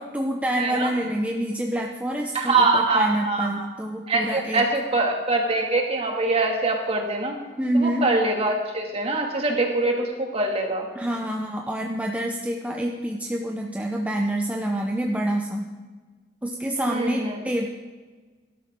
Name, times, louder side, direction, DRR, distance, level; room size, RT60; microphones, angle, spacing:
voice 1, 0.0-4.7 7.6-8.1 10.9-15.7 16.4-17.7, right 1 dB, 10° right, 1 dB, 0.8 m, -27 dB
voice 2, 0.6-0.9 2.3-3.7 4.1-7.3 7.8-10.9 16.9-17.4, right 2 dB, 35° right, 1 dB, 2.3 m, -23 dB
18.5 x 12.5 x 3.7 m, 1.4 s
head